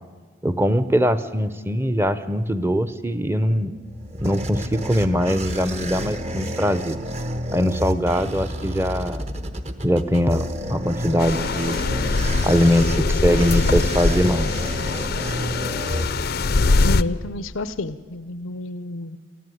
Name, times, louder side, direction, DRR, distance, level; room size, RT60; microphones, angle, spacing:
voice 1, 0.4-3.7 4.2-7.0 7.5-9.2 9.8-11.8 12.4-14.5, equal, 10° right, 13 dB, 0.8 m, -22 dB
sound 1, 3.6-16.6, equal, 35° right, 1.1 m, -30 dB
sound 2, 11.2-17.0, left 3 dB, 50° left, 0.5 m, -22 dB
voice 2, 16.8-19.2, left 2 dB, 90° left, 13 dB, 0.7 m, -30 dB
21.0 x 14.5 x 9.5 m, 1.5 s
head